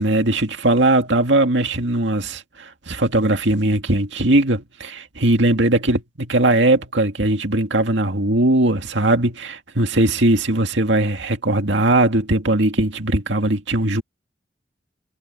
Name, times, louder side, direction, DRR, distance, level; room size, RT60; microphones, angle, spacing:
voice 1, 0.0-14.0, right 2 dB, 85° right, 2.2 m, -19 dB
head